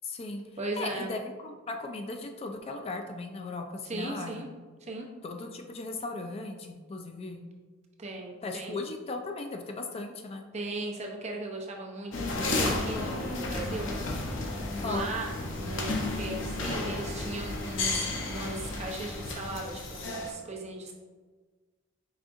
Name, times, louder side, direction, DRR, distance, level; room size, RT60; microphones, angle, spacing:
voice 1, 0.0-0.4 0.8-4.4 5.2-7.5 8.4-10.5 12.9-13.1 14.8-15.1, left 3 dB, 30° left, 4 dB, 0.3 m, -37 dB
voice 2, 0.6-1.1 3.8-4.5 4.8-5.1 8.0-8.8 10.5-13.9 14.8-15.3 15.6-20.9, right 2 dB, 35° right, 0 dB, 0.7 m, -37 dB
sound 1, 12.1-20.3, left 2 dB, 70° left, 0.7 m, -32 dB
4.9 x 3.5 x 2.5 m, 1.4 s
head